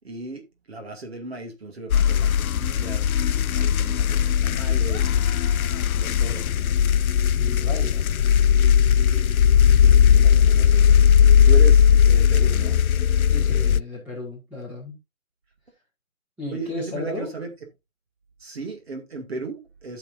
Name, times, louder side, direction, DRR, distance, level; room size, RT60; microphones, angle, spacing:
voice 1, 0.0-5.4 6.0-7.9 9.0-12.8 16.5-17.5 18.4-20.0, right 3 dB, 45° right, 2.5 m, -37 dB
sound 1, 1.9-13.8, left 8 dB, 85° left, 0.5 m, -18 dB
voice 2, 7.3-8.2 13.3-15.0 16.4-17.3, left 2 dB, 5° right, 2.1 m, -34 dB
12.5 x 6.7 x 2.6 m
figure-of-eight pair, 165°, 41 cm